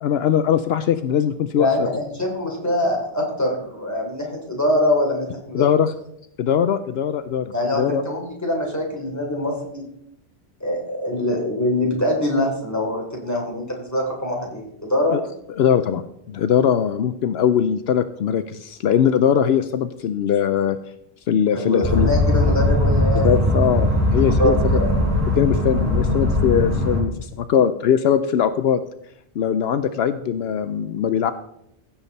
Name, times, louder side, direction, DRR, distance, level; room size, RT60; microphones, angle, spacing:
voice 1, 0.0-1.7 5.5-5.9 6.4-8.0 15.1-15.2 15.6-20.8 21.3-22.1 23.2-24.8 25.3-28.8 29.4-31.3, left 8 dB, 75° left, 11 dB, 0.8 m, -21 dB
voice 2, 1.6-5.8 7.5-9.8 10.6-15.2 21.6-23.6 24.4-24.9, left 1 dB, 15° left, -1 dB, 3.4 m, -24 dB
sound 1, 21.8-27.0, left 1 dB, 15° right, 4.9 m, -19 dB
16.0 x 7.3 x 4.1 m, 0.76 s
omnidirectional pair, 1.1 m